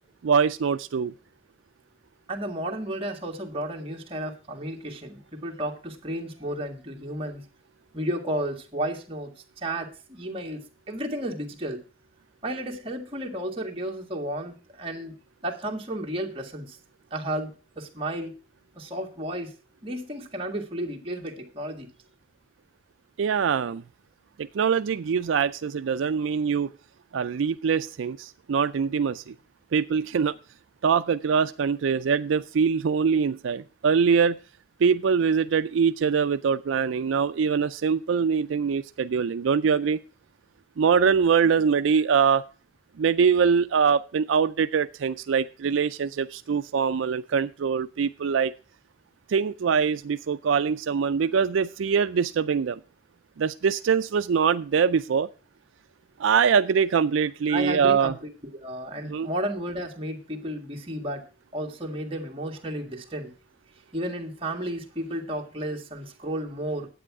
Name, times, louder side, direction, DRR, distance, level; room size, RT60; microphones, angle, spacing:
voice 1, 0.2-1.1 23.2-23.8 24.4-26.7 27.1-29.3 29.7-30.4 30.8-34.4 34.8-40.0 40.8-42.5 43.0-48.5 49.3-52.8 53.4-55.3 56.2-58.1 59.0-59.3, right 6 dB, 85° right, 12 dB, 0.4 m, -23 dB
voice 2, 2.3-7.4 7.9-9.3 9.6-10.6 10.9-11.8 12.4-15.1 15.4-16.8 17.1-18.3 18.7-19.5 19.8-21.9 57.5-61.2 61.5-63.3 63.9-66.9, right 1 dB, 30° right, 1 dB, 1.7 m, -32 dB
10.0 x 8.5 x 4.7 m, 0.36 s
head